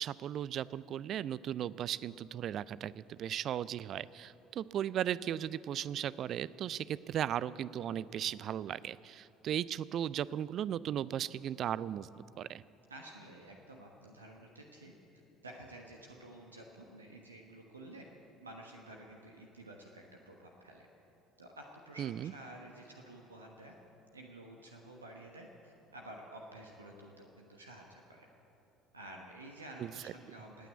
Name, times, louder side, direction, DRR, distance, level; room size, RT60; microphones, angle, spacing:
voice 1, 0.0-12.6 22.0-22.3 29.8-29.9, right 10 dB, 50° right, 19 dB, 0.4 m, -36 dB
voice 2, 12.9-14.9 15.4-18.0 18.4-20.9 21.4-23.7 24.1-28.3 28.9-30.7, right 1 dB, 85° right, 0 dB, 1.2 m, -51 dB
18.5 x 9.2 x 8.3 m, 2.9 s
figure-of-eight pair, 55°, 0 cm